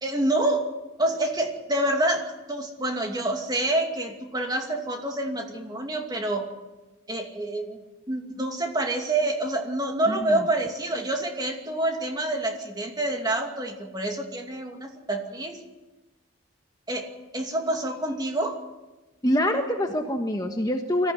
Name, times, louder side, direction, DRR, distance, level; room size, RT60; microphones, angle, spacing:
voice 1, 0.0-0.6 1.0-6.5 7.1-15.6 16.9-17.1 17.3-18.6, right 1 dB, 20° right, 3 dB, 2.4 m, -27 dB
voice 2, 10.1-10.4 19.2-21.1, left 1 dB, 20° left, 4 dB, 1.3 m, -25 dB
23.5 x 15.0 x 9.8 m, 1.1 s
head